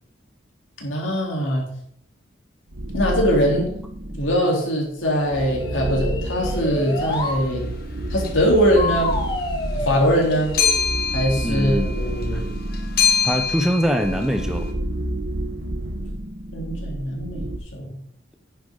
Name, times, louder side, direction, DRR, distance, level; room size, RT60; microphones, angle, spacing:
voice 1, 0.8-1.6 2.9-3.7 4.2-7.6 8.1-9.1 9.7-10.5 11.1-12.5 16.5-17.4 17.7-18.0, equal, 85° left, -2 dB, 3.8 m, -21 dB
sound 1, 2.7-4.4 5.0-17.6, right 1 dB, 75° right, 1.3 m, -30 dB
sound 2, 5.6-7.4 8.8-10.8, left 2 dB, 25° left, 1.5 m, -29 dB
sound 3, 7.0-7.1 8.2-8.6 8.9-14.7, left 7 dB, 55° left, 1.6 m, -26 dB
voice 2, 11.4-11.9 12.3-12.4 13.2-14.7, equal, 5° right, 6 dB, 0.9 m, -23 dB
10.0 x 9.3 x 4.0 m, 0.67 s
head